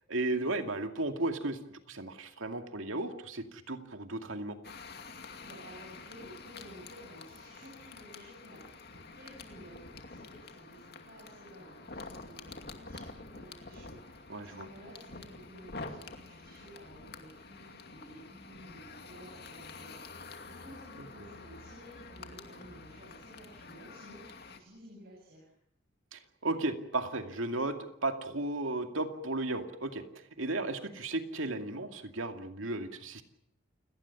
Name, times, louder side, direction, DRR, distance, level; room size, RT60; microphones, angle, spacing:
voice 1, 0.1-4.6 14.3-14.7 26.1-33.2, right 2 dB, 80° right, 6 dB, 2.4 m, -35 dB
sound 1, 4.6-24.6, left 3 dB, 50° left, 2.4 m, -48 dB
voice 2, 5.4-25.5, equal, 50° right, -2 dB, 7.7 m, -53 dB
29.5 x 18.5 x 7.3 m, 0.74 s
head